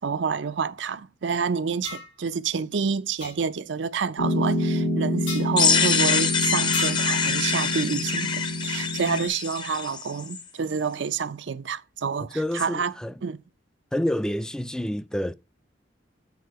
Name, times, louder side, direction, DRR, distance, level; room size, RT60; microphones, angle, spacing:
voice 1, 0.0-12.9 13.2-13.4, right 5 dB, 70° right, 0.5 m, -28 dB
sound 1, 1.8-2.1 3.2-3.3 5.3-5.5 6.7-7.1, left 3 dB, 90° left, 2.8 m, -33 dB
Piano, 4.2-9.3, equal, 70° left, 1.5 m, -27 dB
sound 2, 5.6-10.4, left 5 dB, 25° left, 0.7 m, -25 dB
voice 2, 12.3-13.1 13.9-15.3, left 1 dB, 5° left, 0.3 m, -28 dB
8.3 x 4.3 x 4.7 m
head